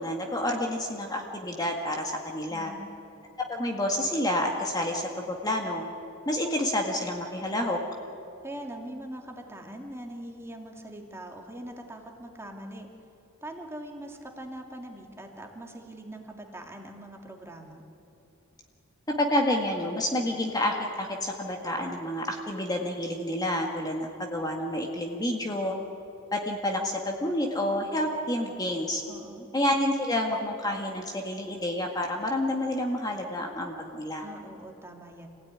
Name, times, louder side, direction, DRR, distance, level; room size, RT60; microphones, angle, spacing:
voice 1, 0.0-2.7 3.5-5.8 6.3-7.8 19.2-25.7 26.3-29.0 29.5-34.2, left 1 dB, 20° left, 1 dB, 1.9 m, -29 dB
voice 2, 2.5-2.9 8.4-12.9 13.4-17.9 29.1-29.5 34.2-35.3, right 1 dB, 10° right, 2 dB, 2.5 m, -42 dB
27.0 x 16.5 x 9.8 m, 2.8 s
head